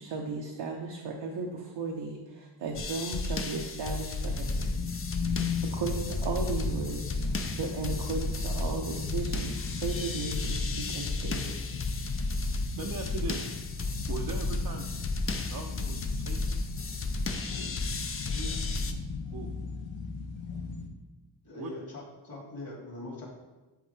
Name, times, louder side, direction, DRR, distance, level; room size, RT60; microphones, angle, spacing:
voice 1, 0.0-4.7 5.6-7.2 7.6-11.6, right 4 dB, 75° right, 0 dB, 0.9 m, -35 dB
sound 1, 2.7-18.9, left 3 dB, 30° left, 0.5 m, -33 dB
sound 2, 4.3-20.9, left 5 dB, 80° left, 1.0 m, -37 dB
voice 2, 12.8-13.5 14.1-14.9 15.2-16.6 19.3-19.5 21.6-21.7, right 4 dB, 50° right, 1 dB, 0.6 m, -39 dB
voice 3, 18.2-18.6 21.4-23.3, left 2 dB, 50° left, -4 dB, 2.4 m, -42 dB
10.5 x 3.7 x 3.3 m, 1.1 s
wide cardioid pair, 135°, 44 cm